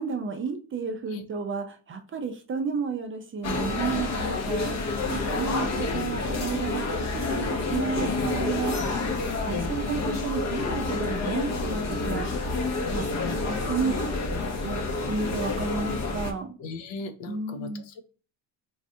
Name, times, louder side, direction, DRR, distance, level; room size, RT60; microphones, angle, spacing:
voice 1, 0.0-7.4 7.7-9.0 9.4-13.1 13.5-14.0 14.6-16.5 17.3-17.8, right 5 dB, 30° right, 5 dB, 0.4 m, -32 dB
sound 1, 3.4-16.3, left 3 dB, 35° left, 0.6 m, -28 dB
voice 2, 16.6-18.0, left 3 dB, 75° left, 7 dB, 0.7 m, -38 dB
3.2 x 2.4 x 2.6 m, 0.36 s
cardioid pair, 95°, 46 cm